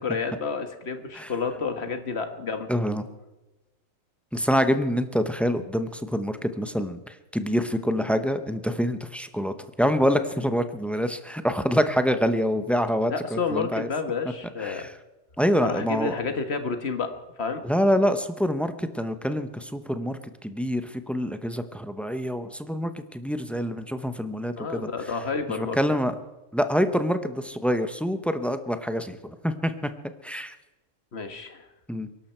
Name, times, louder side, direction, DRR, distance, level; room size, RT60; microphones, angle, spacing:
voice 1, 0.0-2.7 13.1-14.9 15.6-17.1 17.4-17.6 24.6-25.8 31.1-31.6, left 5 dB, 50° left, 8 dB, 1.6 m, -30 dB
voice 2, 2.7-3.0 4.3-13.9 14.6-14.9 15.4-16.2 17.6-24.9 25.5-26.1 26.5-29.2 29.4-29.9 30.2-30.5 31.9-32.1, equal, ahead, 10 dB, 0.6 m, -26 dB
22.5 x 12.0 x 4.5 m, 1.1 s
omnidirectional pair, 1.5 m